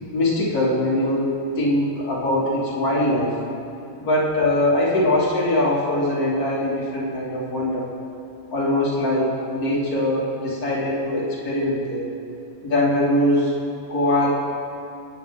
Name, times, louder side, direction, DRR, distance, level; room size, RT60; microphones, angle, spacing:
voice 1, 0.1-3.4 4.0-7.9 8.5-12.1 12.6-13.5 13.9-14.3, left 1 dB, 85° left, -5 dB, 2.0 m, -22 dB
8.3 x 7.8 x 3.7 m, 2.7 s
omnidirectional pair, 1.5 m